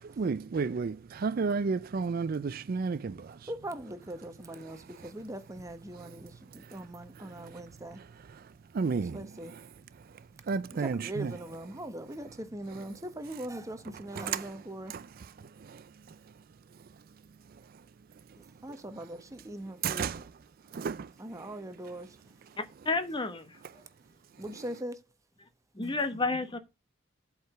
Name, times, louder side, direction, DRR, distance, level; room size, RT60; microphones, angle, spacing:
voice 1, 0.0-3.4 7.4-7.6 8.7-9.2 10.5-11.3 14.2-14.5 14.9-15.1 15.6-15.8 19.8-20.2 20.7-21.1, right 5 dB, 50° right, 0.4 m, -32 dB
voice 2, 3.5-8.0 9.1-9.6 10.8-14.9 18.6-20.3 21.2-22.3 24.4-25.0, right 1 dB, 15° right, 1.1 m, -41 dB
voice 3, 22.6-23.8 25.7-26.6, left 3 dB, 25° left, 1.1 m, -32 dB
8.0 x 4.8 x 6.7 m
head